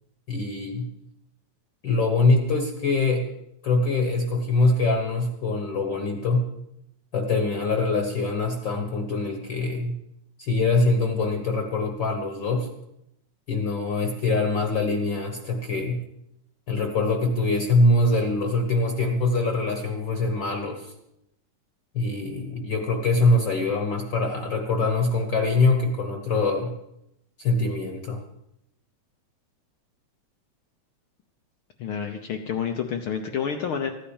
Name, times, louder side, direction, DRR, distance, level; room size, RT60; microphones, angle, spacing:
voice 1, 0.3-0.9 1.8-3.3 3.6-6.5 7.1-10.0 10.4-12.7 13.5-16.0 16.7-20.9 21.9-26.7 27.4-28.2, left 2 dB, 50° left, 3 dB, 1.6 m, -23 dB
voice 2, 31.8-33.9, left 7 dB, 70° left, 5 dB, 1.3 m, -29 dB
15.0 x 10.0 x 7.1 m, 0.82 s
omnidirectional pair, 3.3 m